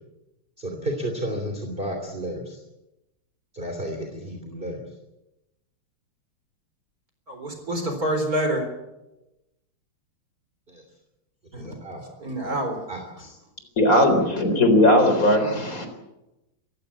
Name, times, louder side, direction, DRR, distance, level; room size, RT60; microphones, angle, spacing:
voice 1, 0.6-2.6 3.5-4.8 10.7-10.8 11.5-12.1 12.4-13.4, right 1 dB, 25° right, 3 dB, 3.2 m, -33 dB
voice 2, 7.3-8.7 11.5-11.7 12.2-12.8, right 1 dB, 40° right, 5 dB, 4.4 m, -27 dB
voice 3, 13.8-15.9, left 1 dB, 40° left, 7 dB, 4.3 m, -18 dB
26.0 x 15.5 x 8.5 m, 0.97 s
omnidirectional pair, 2.4 m